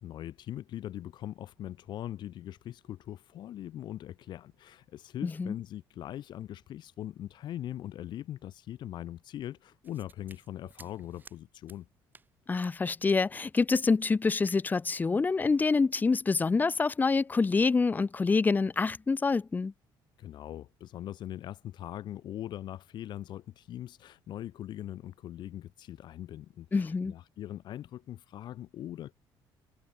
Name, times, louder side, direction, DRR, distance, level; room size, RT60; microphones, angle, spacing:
voice 1, 0.0-11.9 20.2-29.1, left 12 dB, 55° left, 1.4 m, -41 dB
voice 2, 5.2-5.5 12.5-19.7 26.7-27.1, left 4 dB, 20° left, 1.2 m, -26 dB
sound 1, 9.8-11.4 11.7-11.8 12.1-12.3 12.6-12.7 13.1-13.2 13.5-13.6 14.0-14.1 14.4-14.7 14.9-15.1, right 4 dB, 20° right, 4.1 m, -55 dB
cardioid pair, 135°, 9 cm